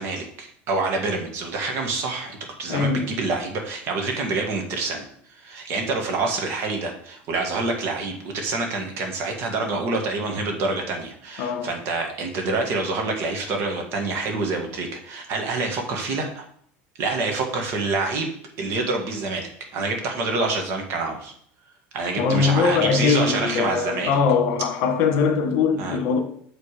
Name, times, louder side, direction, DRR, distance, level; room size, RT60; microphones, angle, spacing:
voice 1, 0.0-16.5 17.0-18.3 18.6-21.3 21.9-24.1 25.8-26.0, right 3 dB, 50° right, 1.8 m, -27 dB
voice 2, 2.7-3.1 11.4-11.7 22.2-26.2, left 5 dB, 65° left, 1.4 m, -21 dB
7.6 x 5.0 x 5.0 m
cardioid pair, 145°, 5 cm